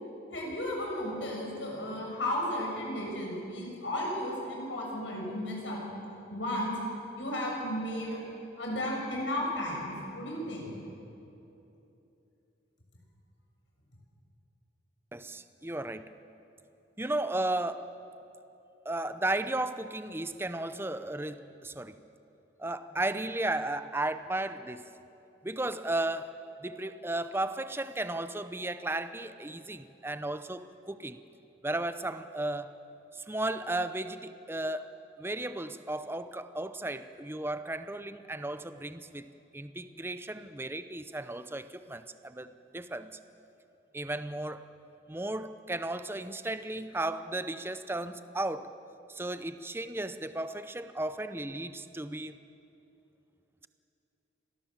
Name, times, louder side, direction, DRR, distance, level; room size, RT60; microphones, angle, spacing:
voice 1, 0.3-5.8 6.3-6.7 7.2-8.2 8.6-10.7, left 1 dB, 85° left, -1 dB, 6.9 m, -34 dB
voice 2, 15.1-16.1 17.0-17.9 18.8-22.0 22.6-24.9 25.4-31.2 31.6-32.8 33.1-43.2 43.9-44.7 45.1-48.7 49.1-52.4, right 2 dB, 10° right, 11 dB, 0.7 m, -35 dB
26.0 x 18.5 x 7.4 m, 2.9 s
head